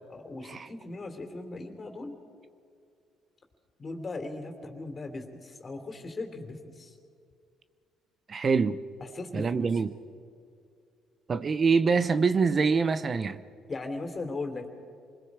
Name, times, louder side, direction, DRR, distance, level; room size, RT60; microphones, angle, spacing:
voice 1, 0.1-2.1 3.8-6.9 9.0-9.8 13.7-14.7, left 3 dB, 40° left, 3.4 m, -38 dB
voice 2, 8.3-8.8 9.3-9.9 11.3-13.4, right 5 dB, 45° right, 0.8 m, -25 dB
27.5 x 21.0 x 4.9 m
supercardioid pair, 65°, 0 cm